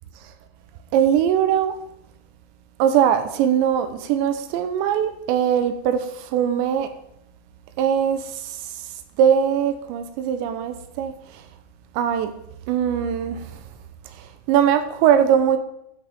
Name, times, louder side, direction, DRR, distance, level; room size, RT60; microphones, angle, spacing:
voice 1, 0.9-1.8 2.8-6.9 7.8-8.7 9.2-11.4 11.9-12.3 12.7-13.6 14.1-15.6, right 9 dB, 80° right, 2.9 m, -21 dB
13.0 x 8.4 x 3.6 m
omnidirectional pair, 5.5 m